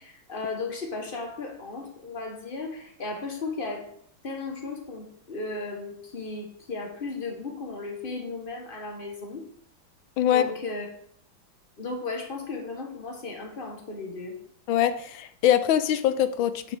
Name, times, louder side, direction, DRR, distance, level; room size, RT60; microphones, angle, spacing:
voice 1, 0.0-3.9 4.2-9.4 10.2-10.9 11.8-14.4, left 3 dB, 30° left, 2 dB, 1.3 m, -35 dB
voice 2, 14.7-16.8, left 10 dB, 85° left, 11 dB, 1.4 m, -23 dB
9.3 x 6.8 x 3.6 m, 0.66 s
omnidirectional pair, 2.1 m